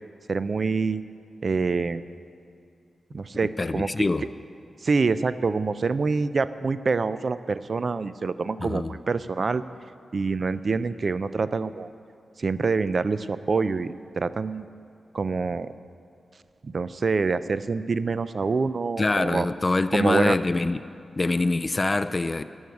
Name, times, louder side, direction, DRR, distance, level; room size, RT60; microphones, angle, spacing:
voice 1, 0.3-1.0 1.4-2.0 3.1-4.0 4.8-9.6 10.1-11.9 12.4-14.7 15.1-15.7 16.6-19.5 19.9-20.4, right 4 dB, 50° right, 14 dB, 0.4 m, -26 dB
voice 2, 3.6-4.3 8.6-8.9 19.0-20.8 21.2-22.4, left 2 dB, 30° left, 12 dB, 0.4 m, -24 dB
14.5 x 6.3 x 9.3 m, 2.5 s
wide cardioid pair, 85°, 0 cm